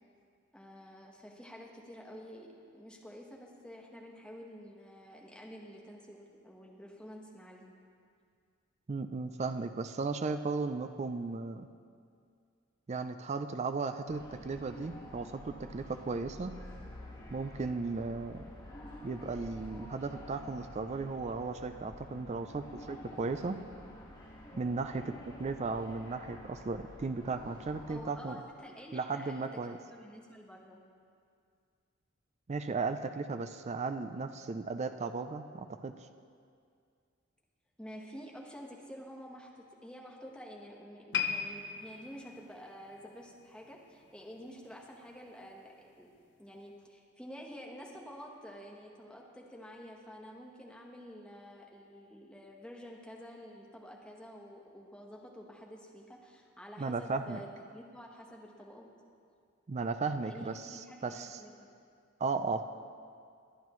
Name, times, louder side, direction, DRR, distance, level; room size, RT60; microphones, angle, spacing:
voice 1, 0.5-2.5 2.7-7.7 27.9-30.8 37.8-46.1 46.4-57.5 57.7-58.9 60.2-61.7, equal, 5° left, -1 dB, 1.2 m, -49 dB
voice 2, 8.9-11.7 12.9-16.5 17.3-18.4 19.0-23.6 24.5-28.4 28.9-29.8 32.5-35.9 56.8-57.4 59.7-61.4 62.2-62.6, right 4 dB, 30° right, 8 dB, 0.4 m, -36 dB
sound 1, 14.1-28.0, left 1 dB, 20° left, 1.5 m, -49 dB
sound 2, 41.1-44.4 44.7-45.0 45.7-45.8, left 8 dB, 60° left, 0.7 m, -38 dB
22.5 x 9.2 x 3.1 m, 2.3 s
head